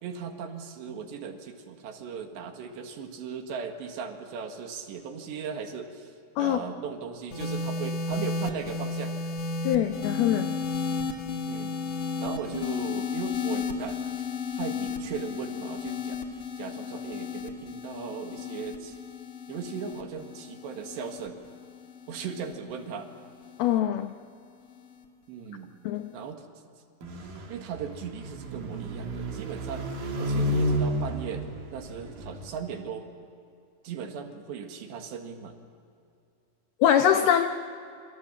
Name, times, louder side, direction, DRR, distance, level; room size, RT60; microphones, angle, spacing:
voice 1, 0.0-9.1 11.5-14.0 14.6-16.2 16.6-19.0 19.5-21.4 22.1-23.1 25.3-25.7 26.1-26.5 27.5-29.9 30.2-33.0 33.8-35.6, right 6 dB, 70° right, 4 dB, 3.8 m, -38 dB
sound 1, 7.3-23.8 24.7-25.0, left 4 dB, 55° left, 1.7 m, -34 dB
voice 2, 9.6-10.6 23.6-24.1 25.9-26.1 36.8-37.5, left 10 dB, 80° left, 7 dB, 2.2 m, -23 dB
sound 2, 27.0-32.5, equal, 50° right, 4.1 m, -31 dB
28.0 x 26.5 x 7.4 m, 2.6 s
omnidirectional pair, 5.7 m